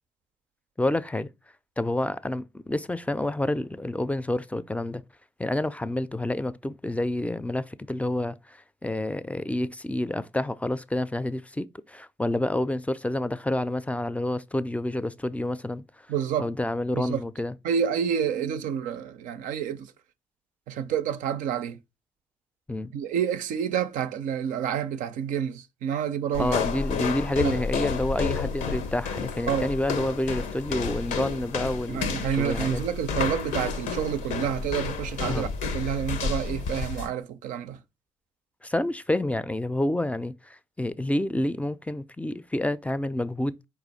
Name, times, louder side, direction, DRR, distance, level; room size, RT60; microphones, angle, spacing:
voice 1, 0.8-1.3 1.8-5.0 5.4-15.8 16.4-17.6 22.7-22.9 26.4-32.1 32.4-32.8 35.3-35.5 38.6-43.7, left 1 dB, 10° left, 0.4 m, -28 dB
voice 2, 16.1-16.5 16.9-17.2 17.6-19.9 20.7-21.8 22.9-26.6 27.4-27.5 29.5-29.7 31.9-35.5 35.7-37.8, right 8 dB, 85° right, 0.4 m, -28 dB
sound 1, 26.3-37.1, left 5 dB, 80° left, 0.7 m, -31 dB
4.2 x 2.4 x 4.0 m
supercardioid pair, 55°, 13 cm